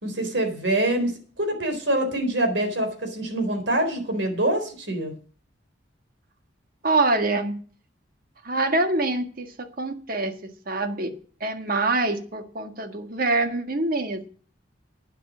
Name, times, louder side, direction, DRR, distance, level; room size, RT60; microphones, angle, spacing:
voice 1, 0.0-5.1, right 1 dB, 70° right, 6 dB, 4.0 m, -25 dB
voice 2, 6.8-7.5 8.4-14.3, right 2 dB, 50° right, 7 dB, 1.7 m, -25 dB
11.5 x 9.3 x 6.2 m, 0.42 s
head